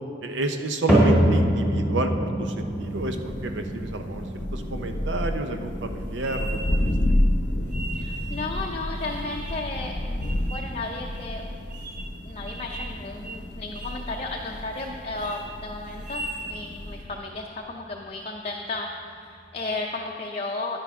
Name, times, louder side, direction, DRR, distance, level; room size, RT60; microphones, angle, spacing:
voice 1, 0.2-3.2 3.4-4.2 4.5-7.2, right 2 dB, 80° right, 6 dB, 0.7 m, -30 dB
sound 1, 0.9-17.2 17.5-18.0 18.6-18.7 19.6-19.7, equal, 5° right, 2.0 m, -29 dB
Thunder, 2.6-17.2, left 1 dB, 75° left, 0.7 m, -30 dB
sound 2, 6.2-7.0 7.7-8.5 9.0-9.7 10.2-10.7 11.1-11.2 11.7-12.2 12.5-13.0 13.2-13.4 13.7-14.1 14.5-14.9 15.2-15.4 15.9-16.5, right 2 dB, 45° right, 1.4 m, -39 dB
voice 2, 7.9-11.4 12.2-20.8, left 3 dB, 30° left, -1 dB, 0.5 m, -34 dB
10.5 x 10.0 x 3.6 m, 2.3 s
head